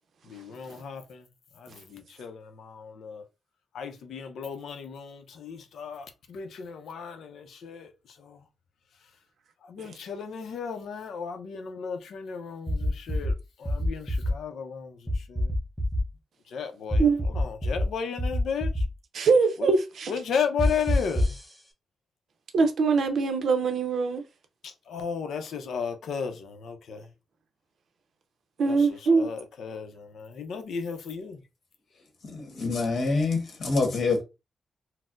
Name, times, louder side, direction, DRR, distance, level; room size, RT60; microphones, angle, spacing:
voice 1, 0.2-1.3 1.5-3.2 3.7-8.4 9.6-15.5 16.5-18.9 19.6-19.7 20.1-21.4 24.6-27.1 28.7-31.4, left 6 dB, 75° left, 0.5 m, -35 dB
sound 1, 12.7-13.3 13.7-14.3 15.1-16.0 16.9-17.9 18.2-18.8 20.6-21.4, left 1 dB, ahead, 0.6 m, -25 dB
voice 2, 19.1-20.1 22.5-24.2 28.6-29.3, right 4 dB, 60° right, 0.5 m, -23 dB
voice 3, 32.2-34.2, left 3 dB, 55° left, 1.2 m, -26 dB
4.2 x 2.0 x 2.4 m
wide cardioid pair, 170°, 0 cm